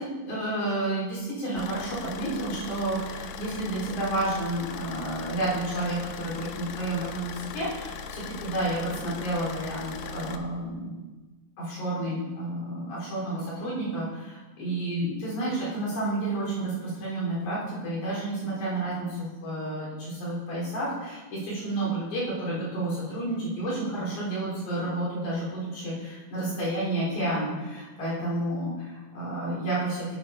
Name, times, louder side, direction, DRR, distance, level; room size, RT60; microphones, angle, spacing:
voice 1, 0.0-11.1 11.6-30.1, right 1 dB, 55° left, -7 dB, 4.9 m, -30 dB
Car / Idling, 1.6-10.4, left 5 dB, 80° left, 2.3 m, -39 dB
9.5 x 8.7 x 4.3 m, 1.2 s
omnidirectional pair, 4.4 m